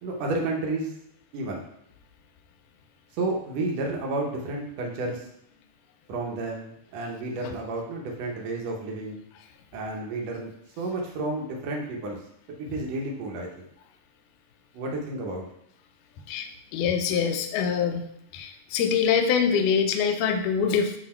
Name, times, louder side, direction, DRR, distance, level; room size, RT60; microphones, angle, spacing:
voice 1, 0.0-0.9 1.3-1.7 3.1-5.3 6.1-9.2 9.7-12.2 12.6-13.7 14.7-15.5, right 2 dB, 75° right, 0 dB, 1.5 m, -31 dB
voice 2, 16.3-18.1 18.3-20.9, left 7 dB, 80° left, 5 dB, 1.8 m, -24 dB
7.9 x 2.7 x 4.3 m, 0.76 s
omnidirectional pair, 4.3 m